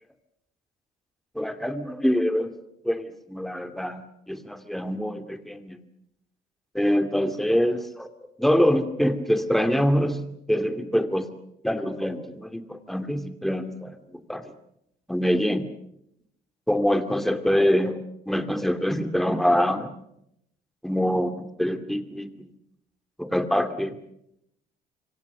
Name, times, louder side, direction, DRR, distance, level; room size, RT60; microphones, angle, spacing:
voice 1, 1.3-2.5 2.8-5.8 6.7-8.1 8.4-10.2 10.5-11.3 11.6-14.0 14.3-14.4 15.1-15.7 16.7-19.9 20.8-22.5 23.2-24.0, equal, ahead, 8 dB, 2.4 m, -25 dB
27.5 x 25.0 x 6.7 m, 0.79 s
cardioid pair, 110°, 17 cm